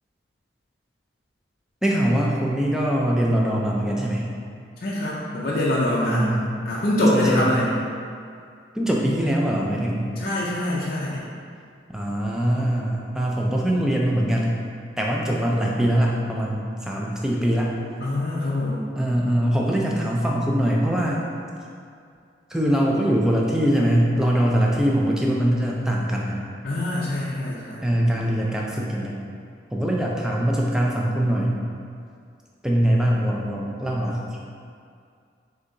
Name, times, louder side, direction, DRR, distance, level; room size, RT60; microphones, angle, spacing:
voice 1, 1.8-4.3 6.1-6.5 7.1-7.5 8.7-10.1 11.9-14.6 15.0-17.7 19.0-21.3 22.5-26.4 27.8-29.1 29.7-31.6 32.6-34.4, equal, 5° right, -3 dB, 0.4 m, -22 dB
voice 2, 4.8-6.3 6.6-7.8 10.2-11.3 18.0-18.9 26.6-27.9, left 1 dB, 50° left, -6 dB, 0.5 m, -24 dB
6.5 x 2.7 x 2.6 m, 2.3 s
head